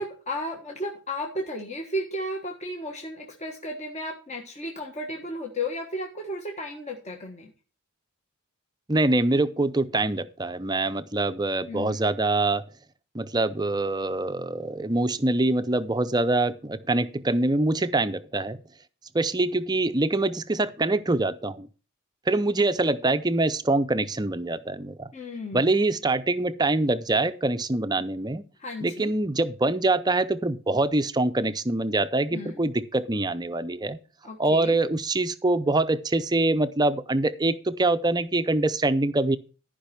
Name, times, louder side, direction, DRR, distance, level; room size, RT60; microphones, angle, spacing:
voice 1, 0.0-7.5 11.7-12.0 25.1-25.7 28.6-29.1 32.3-32.6 34.2-34.8, left 1 dB, 30° left, 1 dB, 1.4 m, -34 dB
voice 2, 8.9-12.6 13.1-18.6 19.1-21.7 22.3-25.1 25.5-28.4 28.8-34.0 34.4-39.4, right 2 dB, 20° right, 12 dB, 0.6 m, -24 dB
13.5 x 5.3 x 5.8 m, 0.35 s
head